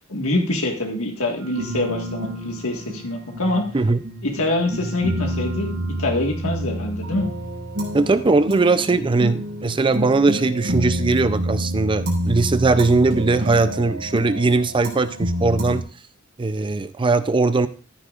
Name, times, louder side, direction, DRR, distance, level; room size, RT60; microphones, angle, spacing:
voice 1, 0.1-3.6 4.2-7.3, left 2 dB, 75° left, 1 dB, 1.7 m, -25 dB
sound 1, 1.6-15.8, equal, 55° right, 5.2 m, -28 dB
voice 2, 7.9-15.8 16.4-17.7, right 3 dB, 25° right, 12 dB, 0.5 m, -19 dB
14.0 x 9.9 x 2.5 m, 0.37 s
head